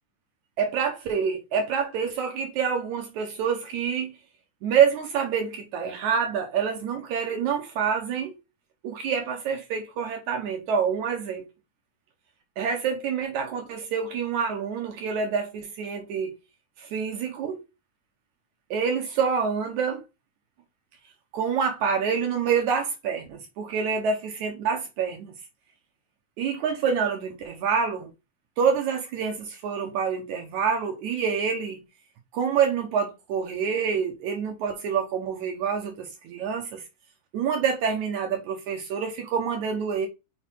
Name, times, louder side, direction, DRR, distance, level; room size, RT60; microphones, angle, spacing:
voice 1, 0.6-4.1 4.6-8.4 8.8-11.5 12.6-16.3 16.8-17.6 18.7-20.0 21.3-25.3 26.4-28.1 28.6-31.8 32.3-36.8 37.3-40.1, right 6 dB, 75° right, 2.5 m, -27 dB
6.5 x 4.7 x 4.6 m
omnidirectional pair, 3.4 m